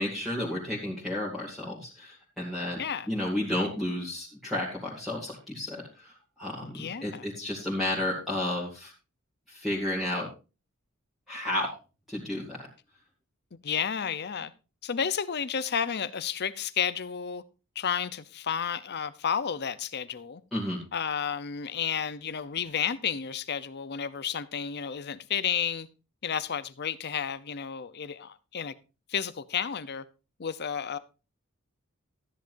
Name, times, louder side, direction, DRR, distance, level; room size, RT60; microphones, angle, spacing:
voice 1, 0.0-8.9 9.5-10.3 11.3-11.8 12.1-12.7 20.5-20.8, left 1 dB, ahead, 2.3 m, -32 dB
voice 2, 6.6-7.3 13.6-14.5 14.8-17.4 17.8-20.4 20.9-25.9 26.2-28.7 29.1-30.0 30.4-31.0, left 7 dB, 50° left, 0.7 m, -31 dB
13.0 x 10.5 x 2.6 m
head